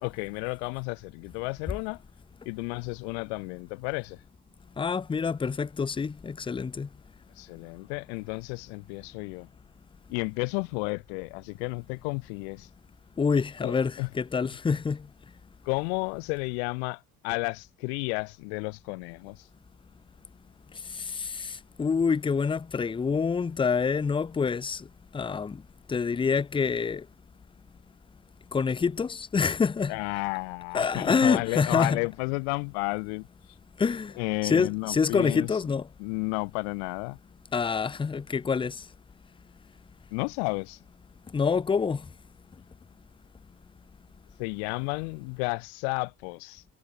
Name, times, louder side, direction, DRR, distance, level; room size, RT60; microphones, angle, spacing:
voice 1, 0.0-2.0 2.5-4.2 7.3-9.5 10.1-12.7 13.6-14.1 15.6-19.5 29.9-33.6 34.2-35.6 36.0-37.2 40.1-40.8 44.4-46.6, left 36 dB, 50° left, 0.6 m, -32 dB
voice 2, 4.8-6.9 13.2-15.1 20.9-24.9 25.1-25.6 25.9-27.0 28.5-29.9 30.7-32.0 33.8-34.1 34.4-35.9 37.5-38.8 41.3-42.0, left 5 dB, 10° left, 0.8 m, -26 dB
figure-of-eight pair, 65°, 44 cm